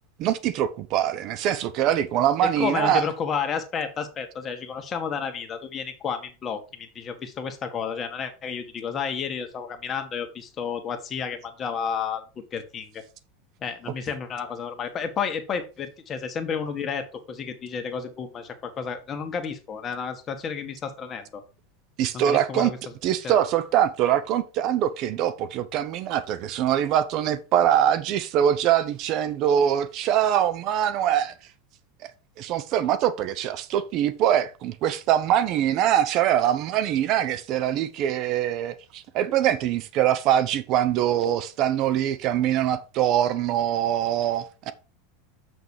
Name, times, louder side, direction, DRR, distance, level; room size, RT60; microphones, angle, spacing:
voice 1, 0.2-3.0 13.9-14.0 22.0-22.7 23.0-31.3 32.4-44.7, right 10 dB, 45° right, 0.7 m, -23 dB
voice 2, 2.6-12.2 12.5-13.0 13.6-21.4 22.1-22.8 23.2-23.4, left 6 dB, 30° left, 1.8 m, -31 dB
7.1 x 6.2 x 4.8 m
supercardioid pair, 130°, 0 cm